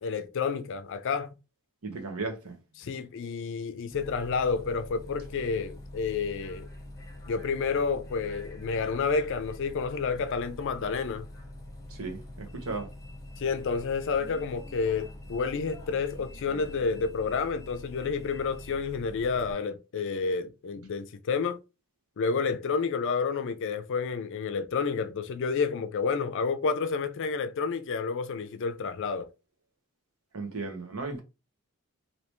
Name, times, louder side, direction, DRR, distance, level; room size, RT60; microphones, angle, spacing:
voice 1, 0.0-1.3 2.8-6.7 7.3-11.3 13.4-21.6 22.2-29.3, left 5 dB, 60° left, 0.4 m, -30 dB
voice 2, 1.8-2.5 11.9-12.9 30.3-31.2, right 3 dB, 75° right, 1.0 m, -35 dB
Bus, 3.9-19.5, left 1 dB, 15° left, 0.9 m, -45 dB
3.2 x 2.8 x 3.0 m
head